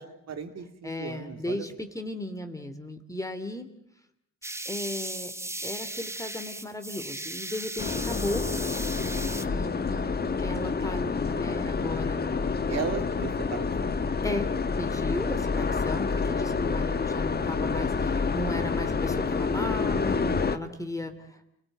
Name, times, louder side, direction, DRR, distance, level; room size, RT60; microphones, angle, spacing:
voice 1, 0.0-1.6 12.7-14.0, right 7 dB, 60° right, 6 dB, 3.6 m, -36 dB
voice 2, 0.8-3.7 4.7-5.3 5.6-8.9 9.2-12.2 12.6-12.8 14.2-14.5 14.8-21.5, left 1 dB, 10° left, 7 dB, 2.9 m, -35 dB
sound 1, 4.4-9.5, right 1 dB, 10° right, 1.4 m, -36 dB
sound 2, 7.8-20.6, left 4 dB, 30° left, 1.6 m, -28 dB
29.5 x 19.0 x 9.3 m, 0.76 s
cardioid pair, 90°, 30 cm